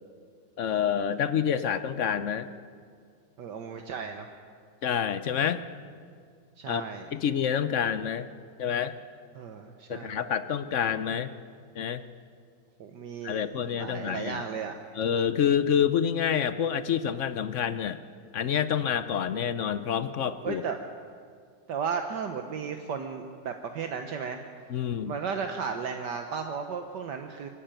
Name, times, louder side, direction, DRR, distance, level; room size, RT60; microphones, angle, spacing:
voice 1, 0.6-2.5 4.8-5.6 6.7-6.8 7.1-8.3 8.6-8.9 9.9-11.3 11.7-12.0 13.2-14.4 15.0-18.0 18.3-20.6 24.7-25.1, left 8 dB, 60° left, 12 dB, 0.8 m, -27 dB
voice 2, 3.4-4.3 6.6-7.1 9.4-10.2 12.8-13.4 13.8-14.8 20.4-20.8 21.7-24.4 25.0-27.5, right 6 dB, 70° right, 5 dB, 1.6 m, -34 dB
24.0 x 13.5 x 9.0 m, 2.1 s
omnidirectional pair, 2.0 m